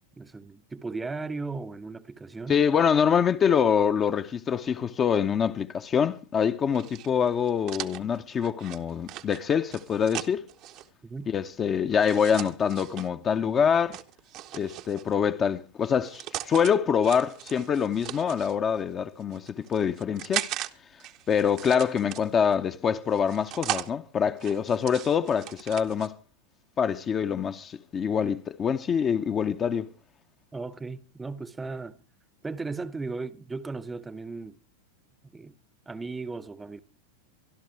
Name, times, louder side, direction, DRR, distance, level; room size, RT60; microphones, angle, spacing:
voice 1, 0.2-2.6 11.0-11.3 30.5-32.0 32.4-34.6 35.3-35.5 35.9-36.8, right 3 dB, 10° right, 0.9 m, -36 dB
voice 2, 2.5-10.5 11.3-14.0 14.5-20.5 21.3-26.2 26.8-29.9, left 7 dB, 25° left, 0.8 m, -25 dB
sound 1, 6.7-10.9 12.0-13.1 13.9-15.1 15.8-16.7 17.0-18.5 19.2-20.7 21.0-22.5 23.1-23.9 24.4-26.1, right 13 dB, 40° right, 0.9 m, -38 dB
24.0 x 12.0 x 3.3 m
figure-of-eight pair, 90°, 0 cm